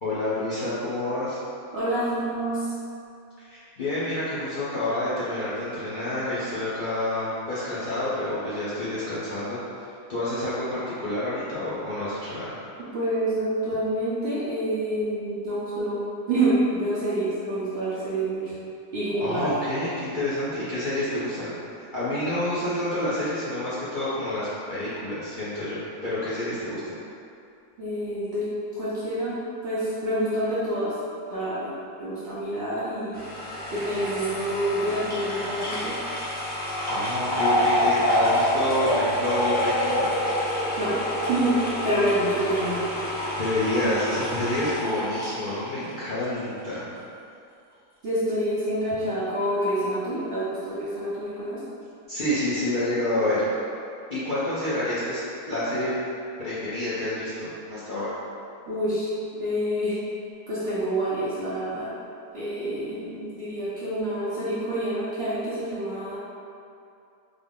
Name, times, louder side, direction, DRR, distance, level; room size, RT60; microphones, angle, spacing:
voice 1, 0.0-1.4 3.4-9.6 10.1-12.5 19.2-21.5 21.9-26.9 36.9-40.1 43.3-46.8 52.1-53.5 54.1-55.9 56.4-58.2, left 1 dB, 45° left, -12 dB, 0.7 m, -28 dB
voice 2, 1.7-2.6 12.9-18.5 18.9-19.5 27.8-28.5 28.7-29.4 29.6-30.9 31.3-31.7 32.0-33.2 33.7-35.9 40.8-41.0 41.2-41.6 41.8-42.8 48.0-51.6 58.7-59.1 59.4-60.0 60.5-61.9 62.3-66.2, right 1 dB, 60° right, -10 dB, 0.7 m, -27 dB
sound 1, 33.1-46.4 46.7-46.8, equal, 10° left, 0.6 m, -27 dB
3.6 x 2.0 x 3.5 m, 2.5 s
omnidirectional pair, 1.6 m